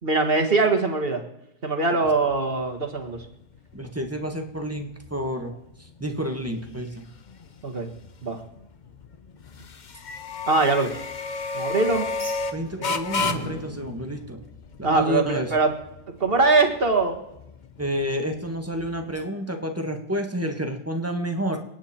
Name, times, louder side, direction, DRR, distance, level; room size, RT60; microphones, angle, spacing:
voice 1, 0.0-1.2 1.6-3.2 7.6-7.9 8.2-8.4 10.5-11.1 11.5-12.1 12.8-12.9 14.8-15.7 16.2-17.2, right 3 dB, 35° right, 3 dB, 1.7 m, -22 dB
sound 1, 2.1-19.3, left 4 dB, 40° left, 0.6 m, -35 dB
voice 2, 3.7-5.5 5.8-7.0 12.5-14.4 14.8-15.5 17.8-21.6, equal, 10° right, 4 dB, 1.4 m, -29 dB
sound 2, 12.1-15.2, right 1 dB, 15° left, 3.3 m, -39 dB
28.5 x 9.7 x 4.4 m, 0.84 s
omnidirectional pair, 1.8 m